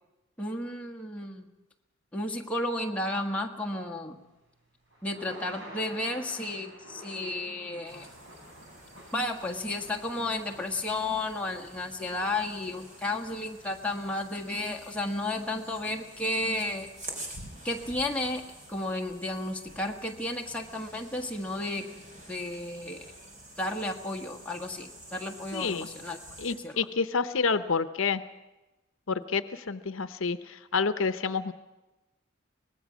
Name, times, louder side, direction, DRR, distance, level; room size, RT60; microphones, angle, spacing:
voice 1, 0.4-1.5 2.1-4.2 5.0-8.1 9.1-16.9 17.6-18.4 18.7-21.9 22.3-23.1 23.6-26.2 26.5-26.8, left 2 dB, 5° left, 1 dB, 1.5 m, -33 dB
Thunder / Rain, 4.1-18.4, equal, 60° right, 6.4 m, -52 dB
sound 1, 7.8-26.5, right 1 dB, 40° right, 4.2 m, -48 dB
voice 2, 25.5-25.9 26.4-28.2 29.1-31.5, left 5 dB, 70° left, 11 dB, 0.7 m, -29 dB
24.0 x 19.0 x 6.2 m, 1.0 s
head